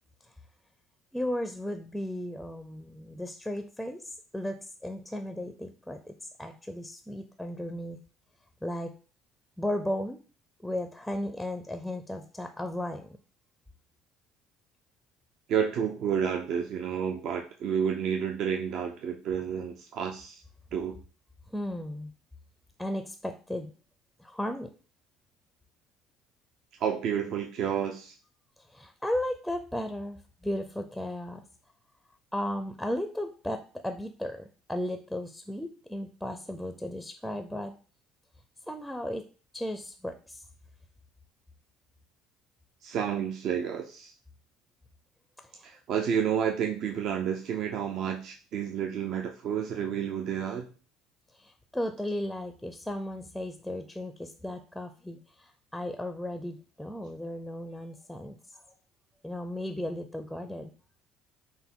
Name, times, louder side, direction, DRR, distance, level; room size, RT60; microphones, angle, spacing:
voice 1, 1.1-8.0 8.6-8.9 9.6-10.2 10.6-13.2 21.5-22.1 22.8-23.7 24.2-24.7 28.6-31.4 32.3-37.7 38.7-39.2 39.5-40.4 45.4-45.7 51.3-58.6 59.2-60.7, left 1 dB, ahead, 7 dB, 0.4 m, -35 dB
voice 2, 15.5-20.4 20.7-21.0 26.8-28.1 42.8-44.1 45.6-50.7, right 8 dB, 60° right, 3 dB, 0.5 m, -30 dB
5.7 x 2.2 x 3.7 m, 0.37 s
supercardioid pair, 100°, 0 cm